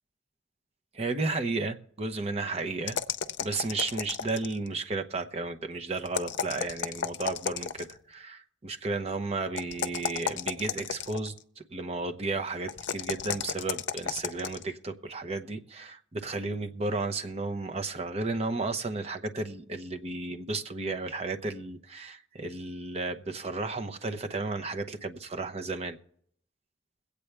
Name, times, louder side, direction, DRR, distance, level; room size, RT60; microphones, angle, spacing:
voice 1, 0.9-3.0 3.4-26.0, right 3 dB, 35° right, 0.8 m, -33 dB
sound 1, 2.9-4.7 6.1-8.0 9.5-11.4 12.7-14.6, left 7 dB, 80° left, 0.6 m, -33 dB
22.0 x 8.4 x 3.3 m
head